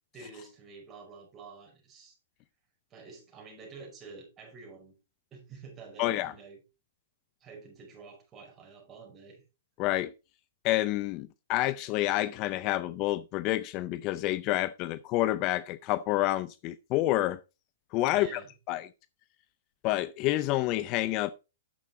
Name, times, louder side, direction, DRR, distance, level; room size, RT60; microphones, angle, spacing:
voice 1, 0.1-2.2 2.9-4.9 5.3-6.6 7.4-9.4 18.1-18.5, right 4 dB, 20° right, 5.3 m, -49 dB
voice 2, 6.0-6.3 9.8-10.1 10.6-17.4 17.9-18.4 18.7-18.9 19.8-21.3, left 16 dB, 35° left, 0.5 m, -28 dB
10.0 x 7.4 x 4.0 m
hypercardioid pair, 145°, 0 cm